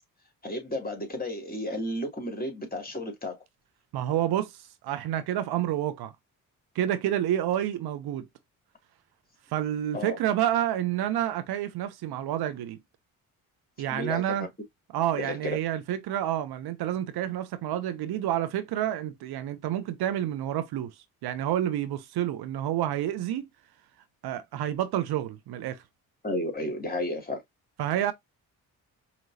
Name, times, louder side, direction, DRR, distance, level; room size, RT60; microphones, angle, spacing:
voice 1, 0.4-3.4 9.9-10.2 13.9-14.5 15.2-15.6 26.2-27.4, left 1 dB, 25° left, 2.5 m, -32 dB
voice 2, 3.9-6.1 6.7-8.3 9.5-12.8 13.8-14.5 14.9-20.9 21.2-23.4 24.2-25.8 27.8-28.1, right 11 dB, 80° right, 0.8 m, -29 dB
5.1 x 3.0 x 2.7 m
supercardioid pair, 55°, 38 cm